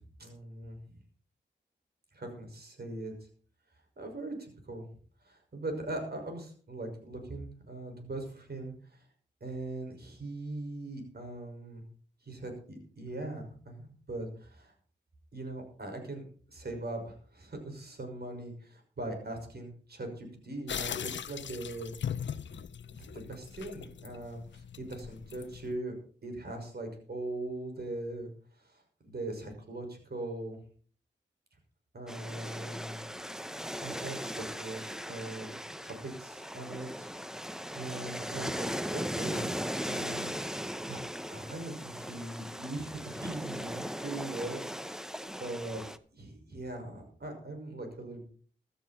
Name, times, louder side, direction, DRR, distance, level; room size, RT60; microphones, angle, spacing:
voice 1, 0.2-1.0 2.1-3.3 4.0-4.9 5.2-9.0 9.4-11.8 12.2-14.7 15.3-21.9 22.5-22.6 23.0-25.9 26.2-28.3 28.6-30.6 31.9-33.0 33.8-37.1 37.7-39.5 39.8-41.0 41.3-44.6 45.3-45.8 46.1-48.3, right 2 dB, 60° right, 4 dB, 5.9 m, -40 dB
sound 1, 20.7-25.8, left 8 dB, 80° left, 0.6 m, -40 dB
sound 2, 32.1-46.0, equal, 5° right, 0.9 m, -38 dB
15.0 x 13.0 x 4.4 m, 0.43 s
cardioid pair, 60°, 19 cm